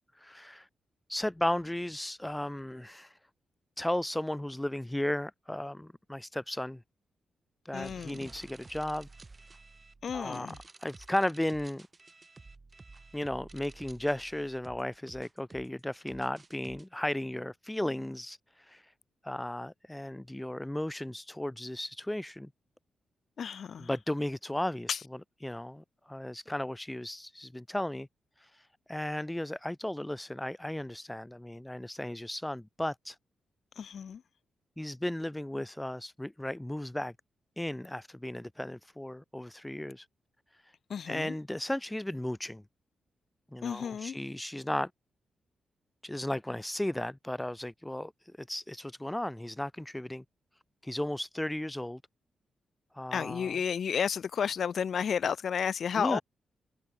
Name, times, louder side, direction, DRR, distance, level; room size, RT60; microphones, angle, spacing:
voice 1, 0.2-0.7 1.1-3.2 3.8-6.8 7.6-9.1 10.1-10.5 10.8-11.9 13.1-18.9 19.2-22.5 23.8-24.9 25.4-28.1 28.4-33.2 34.8-37.1 37.6-40.1 40.5-40.7 41.1-42.6 43.5-44.9 46.0-50.2 50.8-52.0 52.9-53.5 56.0-56.2, left 1 dB, 10° left, 0.9 m, -35 dB
voice 2, 7.7-8.3 10.0-10.6 23.4-23.9 24.9-25.0 33.8-34.2 40.9-41.3 43.6-44.2 53.1-56.2, left 7 dB, 60° left, 0.4 m, -32 dB
sound 1, 7.8-16.8, right 3 dB, 25° right, 7.6 m, -52 dB
cardioid pair, 95°, 0 cm